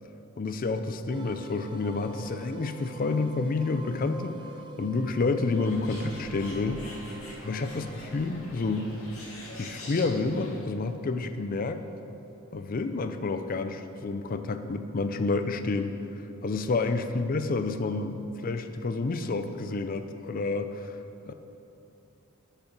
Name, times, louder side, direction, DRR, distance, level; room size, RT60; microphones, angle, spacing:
voice 1, 0.4-6.8 7.4-8.9 9.6-11.8 12.5-16.0 16.4-21.0 21.3-21.4, left 3 dB, 40° left, 9 dB, 0.4 m, -29 dB
sound 1, 1.1-12.3, right 3 dB, 20° right, 0.6 m, -48 dB
Bird, 5.5-10.6, left 1 dB, 70° left, 2.3 m, -44 dB
8.2 x 6.7 x 6.0 m, 2.9 s
head